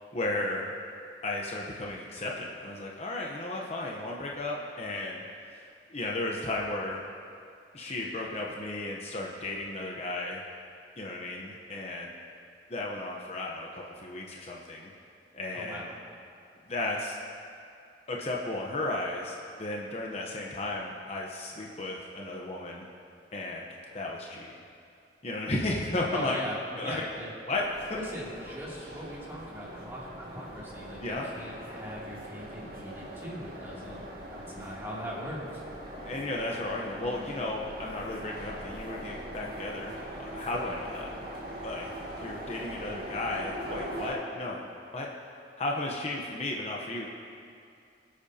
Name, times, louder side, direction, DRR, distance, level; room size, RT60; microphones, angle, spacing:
voice 1, 0.1-0.7 1.2-5.2 5.5-5.6 5.9-7.0 7.7-10.4 11.0-12.1 12.7-14.9 15.3-15.9 16.7-17.2 18.1-22.9 23.3-23.7 23.9-24.5 25.2-26.4 26.8-27.0 27.5-28.0 31.0-31.3 33.8-34.0 35.9-41.1 41.6-41.9 42.2-44.7 44.9-45.1 45.6-47.1, left 2 dB, 35° left, -2 dB, 0.9 m, -34 dB
voice 2, 15.5-15.9 26.1-27.3 27.9-34.0 34.3-35.6, equal, 15° right, -7 dB, 2.7 m, -40 dB
sound 1, 27.5-44.1, equal, 55° right, 2.0 m, -41 dB
23.5 x 8.7 x 2.8 m, 2.4 s
head